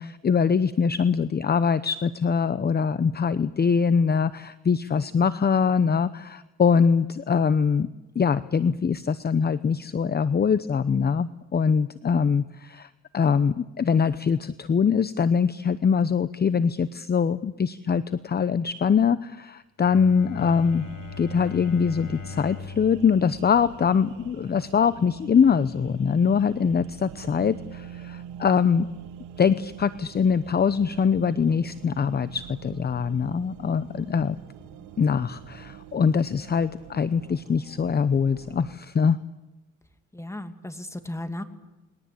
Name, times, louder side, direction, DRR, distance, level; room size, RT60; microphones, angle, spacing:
voice 1, 0.0-7.9 8.1-20.9 21.2-28.9 29.4-34.4 35.0-39.2, left 6 dB, 35° left, 15 dB, 0.8 m, -23 dB
Bowed string instrument, 19.8-25.5, left 6 dB, 70° left, 5.3 m, -41 dB
sound 1, 20.4-38.8, right 9 dB, 85° right, 1.7 m, -45 dB
voice 2, 40.1-41.4, left 1 dB, 10° left, 8 dB, 2.6 m, -36 dB
29.5 x 21.0 x 8.6 m, 1.0 s
cardioid pair, 90°, 30 cm